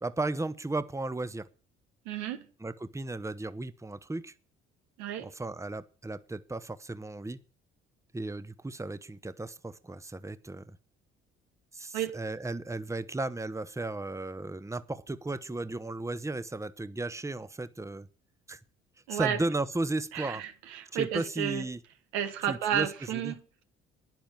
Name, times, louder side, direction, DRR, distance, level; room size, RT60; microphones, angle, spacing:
voice 1, 0.0-1.5 2.6-4.3 5.2-7.4 8.1-10.8 11.7-18.1 18.5-18.6 19.1-20.4 20.9-21.8 22.5-22.9 23.1-23.4, right 2 dB, 10° right, 1.0 m, -35 dB
voice 2, 2.0-2.4 5.0-5.3 11.9-12.1 19.1-19.4 20.1-21.6 22.1-23.6, right 10 dB, 85° right, 1.6 m, -32 dB
10.5 x 10.5 x 7.1 m
hypercardioid pair, 55°, 29 cm